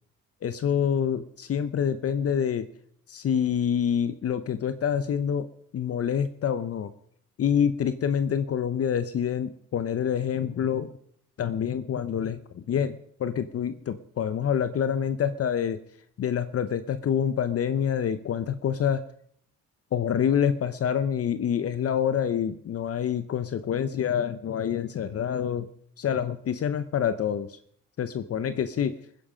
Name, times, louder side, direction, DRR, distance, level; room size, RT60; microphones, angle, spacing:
voice 1, 0.4-2.7 3.1-5.5 5.7-6.9 7.4-10.9 11.4-15.8 16.2-19.0 19.9-25.7 26.0-27.6 28.0-29.0, left 8 dB, 50° left, 12 dB, 0.8 m, -27 dB
20.5 x 10.0 x 5.1 m, 0.67 s
cardioid pair, 90°, 30 cm